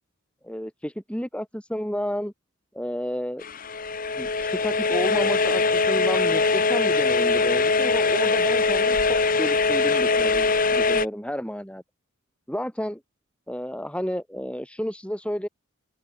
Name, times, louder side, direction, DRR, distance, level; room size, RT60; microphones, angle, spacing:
voice 1, 0.4-2.3 2.7-3.5 4.2-4.3 4.6-11.8 12.5-13.0 13.5-15.5, equal, 5° left, 5.0 m, -31 dB
sound 1, 3.4-11.1, left 4 dB, 40° left, 1.4 m, -22 dB
open air
head